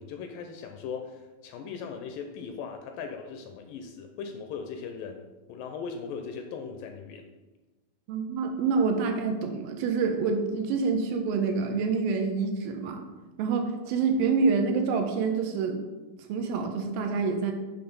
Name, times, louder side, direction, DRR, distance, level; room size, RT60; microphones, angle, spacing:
voice 1, 0.0-7.3, left 6 dB, 80° left, 4 dB, 2.0 m, -39 dB
voice 2, 8.1-13.0 13.4-15.8 16.3-17.5, right 4 dB, 80° right, 5 dB, 2.3 m, -27 dB
7.8 x 3.5 x 5.2 m, 1.2 s
omnidirectional pair, 4.2 m